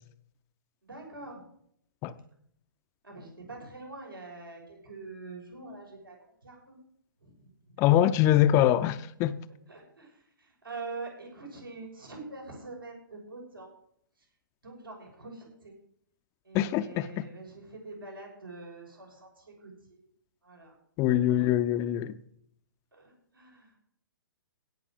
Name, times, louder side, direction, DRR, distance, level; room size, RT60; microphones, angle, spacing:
voice 1, 0.8-1.4 3.0-6.8 7.2-7.8 9.7-13.7 14.2-14.3 14.6-15.8 16.4-20.0 20.4-21.7 22.9-23.8, right 3 dB, 75° right, 6.5 m, -45 dB
voice 2, 7.8-9.4 16.5-17.1 21.0-22.2, left 12 dB, 25° left, 0.6 m, -23 dB
17.0 x 6.0 x 7.5 m
figure-of-eight pair, 120°, 12 cm